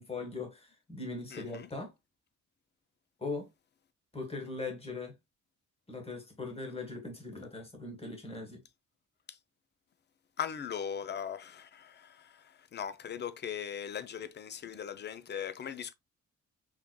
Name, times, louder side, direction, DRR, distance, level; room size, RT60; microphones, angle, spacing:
voice 1, 0.0-1.9 3.2-3.5 4.1-5.1 5.9-8.6, left 3 dB, 20° left, 1.5 m, -40 dB
voice 2, 1.3-1.7 9.3-9.4 10.4-15.9, left 8 dB, 35° left, 0.5 m, -39 dB
4.8 x 3.6 x 2.3 m
wide cardioid pair, 175°, 31 cm